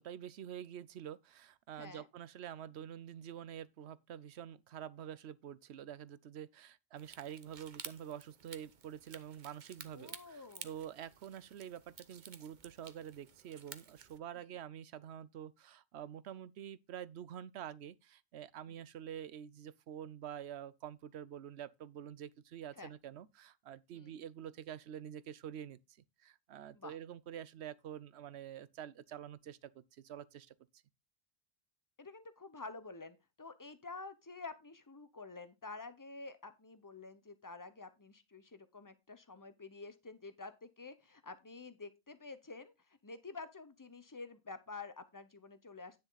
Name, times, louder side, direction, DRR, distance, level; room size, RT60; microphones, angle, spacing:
voice 1, 0.0-25.8 26.2-30.5, right 10 dB, 85° right, 0.9 m, -47 dB
sound 1, 7.0-14.2, right 6 dB, 50° right, 0.9 m, -53 dB
voice 2, 9.9-10.7 14.4-14.5 18.7-18.8 22.8-22.9 23.9-24.2 26.7-26.9 32.0-46.0, left 3 dB, 20° left, 0.9 m, -49 dB
9.8 x 6.6 x 4.0 m
omnidirectional pair, 1.1 m